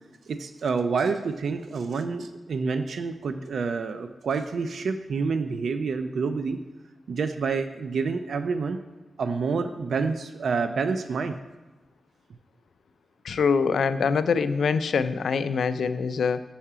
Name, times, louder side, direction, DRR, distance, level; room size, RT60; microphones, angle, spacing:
voice 1, 0.3-6.6 7.1-8.8 9.2-11.3, right 4 dB, 75° right, 8 dB, 0.4 m, -28 dB
voice 2, 13.2-16.4, left 5 dB, 85° left, 12 dB, 0.3 m, -24 dB
5.6 x 5.6 x 4.9 m, 1.2 s
wide cardioid pair, 125°, 0 cm